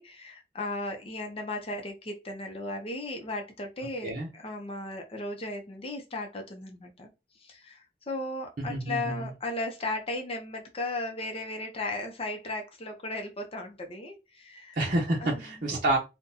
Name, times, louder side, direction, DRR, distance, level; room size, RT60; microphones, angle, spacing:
voice 1, 0.0-7.1 7.4-14.8 15.2-15.4, left 2 dB, 35° left, 3 dB, 0.6 m, -36 dB
voice 2, 8.6-9.3 14.7-16.0, right 1 dB, 50° right, -2 dB, 0.8 m, -28 dB
3.7 x 2.2 x 2.7 m, 0.26 s
head